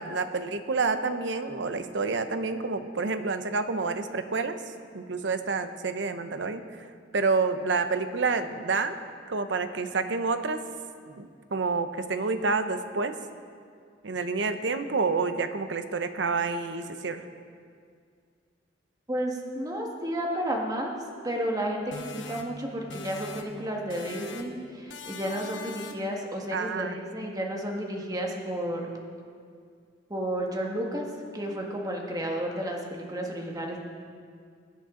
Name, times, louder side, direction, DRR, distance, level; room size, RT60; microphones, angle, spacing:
voice 1, 0.0-4.6 4.9-6.9 7.1-8.9 9.3-10.6 11.1-13.1 14.0-17.2 26.5-27.3, right 4 dB, 70° right, 9 dB, 0.8 m, -28 dB
voice 2, 19.1-20.9 21.2-28.8 30.1-31.1 31.3-33.8, right 1 dB, 20° right, 0 dB, 1.5 m, -32 dB
sound 1, 21.9-23.6 23.9-24.6 24.9-26.2, left 4 dB, 80° left, 1.1 m, -41 dB
21.5 x 8.4 x 3.8 m, 2.2 s
head